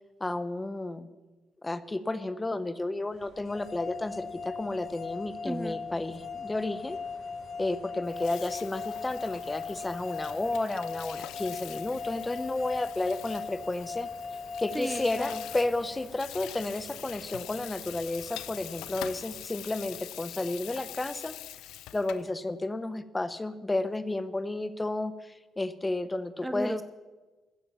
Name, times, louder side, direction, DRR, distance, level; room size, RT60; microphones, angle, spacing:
voice 1, 0.2-1.1 1.6-7.0 7.6-14.1 14.6-21.3 21.9-26.8, left 2 dB, 15° left, 13 dB, 0.9 m, -32 dB
sound 1, 3.1-19.4, right 2 dB, 90° right, 5.6 m, -54 dB
sound 2, 3.5-16.4, left 5 dB, 45° left, 0.8 m, -39 dB
voice 2, 5.4-5.8 14.7-15.4 26.4-26.8, right 1 dB, 10° right, 12 dB, 0.6 m, -34 dB
Water tap faucet / Sink (filling or washing), 8.0-22.3, left 13 dB, 90° left, 0.5 m, -45 dB
14.5 x 9.7 x 7.0 m, 1.2 s
cardioid pair, 90°, 0 cm